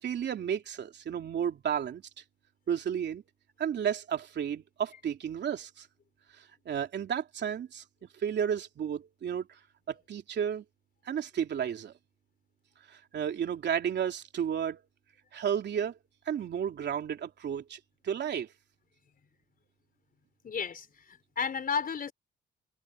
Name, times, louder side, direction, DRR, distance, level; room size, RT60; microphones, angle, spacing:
voice 1, 0.0-2.0 2.7-3.2 3.6-5.9 6.4-7.8 8.2-9.6 9.9-10.6 11.0-11.9 12.9-14.8 15.3-16.0 16.3-18.5, right 8 dB, 60° right, 3.2 m, -32 dB
voice 2, 20.4-22.1, left 6 dB, 45° left, 5.0 m, -33 dB
cardioid pair, 90°, 20 cm